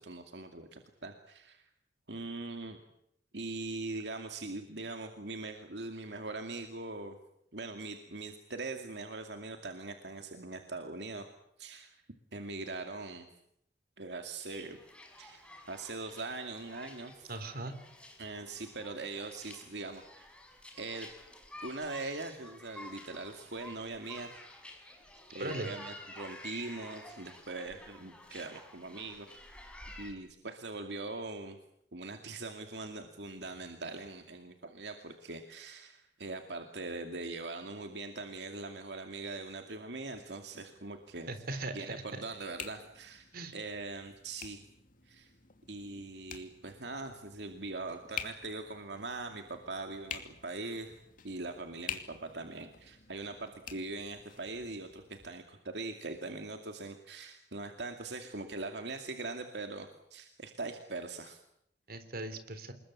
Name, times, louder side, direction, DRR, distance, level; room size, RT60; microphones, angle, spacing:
voice 1, 0.0-1.7 2.1-2.8 3.3-7.2 7.5-11.3 11.6-12.0 12.3-13.3 14.0-14.8 15.2-17.3 18.2-20.3 20.7-21.1 21.6-24.3 24.8-24.9 25.3-29.3 30.0-31.6 31.9-41.3 41.7-43.3 43.5-44.6 45.1-45.3 45.7-50.9 51.2-61.4, right 3 dB, 75° right, 5 dB, 2.4 m, -41 dB
sound 1, 14.5-30.1, left 1 dB, 5° left, 5.3 m, -51 dB
voice 2, 17.3-17.8 25.3-25.7 41.3-42.2 43.3-43.5 61.9-62.7, right 2 dB, 60° right, 10 dB, 3.6 m, -39 dB
sound 2, 40.1-55.3, left 7 dB, 50° left, 2.7 m, -49 dB
27.5 x 21.5 x 8.5 m, 0.74 s
head